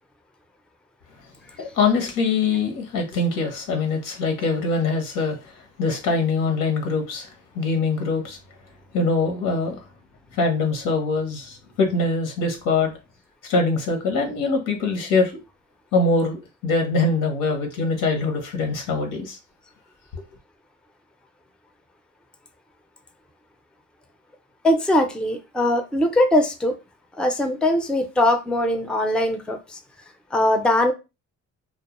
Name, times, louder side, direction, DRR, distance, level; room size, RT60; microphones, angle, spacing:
voice 1, 1.6-5.4 5.8-7.3 7.5-8.4 8.9-9.8 10.4-12.9 13.4-15.3 15.9-19.4, left 3 dB, 90° left, 0.9 m, -23 dB
voice 2, 24.6-26.7 27.2-29.6 30.3-30.9, left 1 dB, 5° left, 0.3 m, -21 dB
2.2 x 2.0 x 2.9 m
cardioid pair, 90°, 30 cm